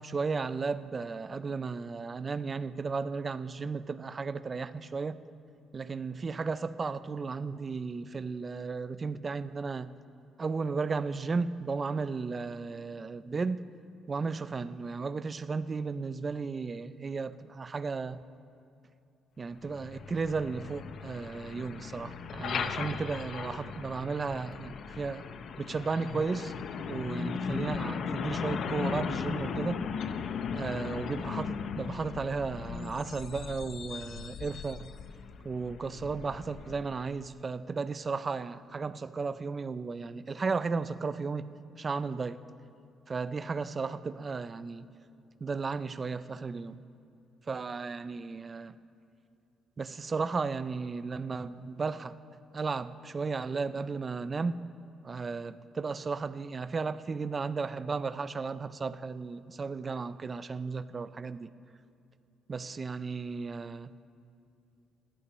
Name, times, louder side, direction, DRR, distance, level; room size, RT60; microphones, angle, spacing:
voice 1, 0.0-5.2 5.7-9.9 10.4-13.6 14.1-18.2 19.4-25.2 25.6-26.5 26.9-29.8 30.5-34.9 35.4-41.5 41.8-42.4 43.1-44.9 45.4-46.8 47.5-48.7 49.8-52.2 52.5-54.6 55.0-61.5 62.5-63.9, right 4 dB, 25° right, 0.3 m, -34 dB
Truck, 19.6-37.3, left 6 dB, 45° left, 0.5 m, -37 dB
20.0 x 11.0 x 3.0 m
cardioid pair, 165°, 0 cm